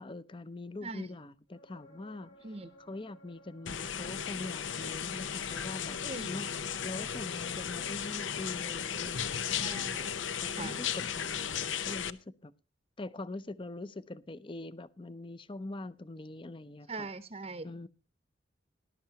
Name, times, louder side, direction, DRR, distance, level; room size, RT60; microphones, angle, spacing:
voice 1, 0.0-2.4 2.8-6.0 6.3-6.5 6.8-9.9 10.4-12.5 13.0-17.1 17.6-17.9, left 2 dB, 25° left, 0.6 m, -43 dB
sound 1, 1.5-5.3 8.9-9.0, right 1 dB, 65° left, 5.2 m, -59 dB
sound 2, 3.7-12.1, left 8 dB, 85° left, 0.7 m, -35 dB
voice 2, 6.0-6.5 9.6-10.1 10.5-10.8 16.9-17.7, right 3 dB, 35° right, 0.8 m, -41 dB
19.5 x 11.5 x 2.8 m
head